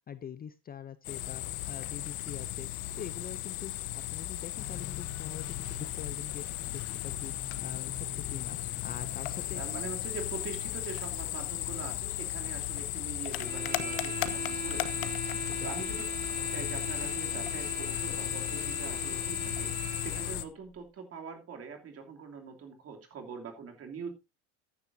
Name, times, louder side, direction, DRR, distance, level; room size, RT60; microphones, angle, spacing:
voice 1, 0.0-2.7 3.0-6.4 6.7-9.6 15.6-15.7, left 8 dB, 25° left, 14 dB, 0.5 m, -44 dB
sound 1, 1.0-20.4, left 15 dB, 65° left, 1.1 m, -35 dB
sound 2, 4.6-9.6, left 8 dB, 40° left, 1.1 m, -45 dB
voice 2, 9.5-16.0 16.4-24.1, right 5 dB, 40° right, 4 dB, 2.9 m, -43 dB
sound 3, 13.3-20.4, right 4 dB, 25° right, 3.0 m, -41 dB
13.5 x 9.9 x 2.7 m, 0.24 s
cardioid pair, 130°, 38 cm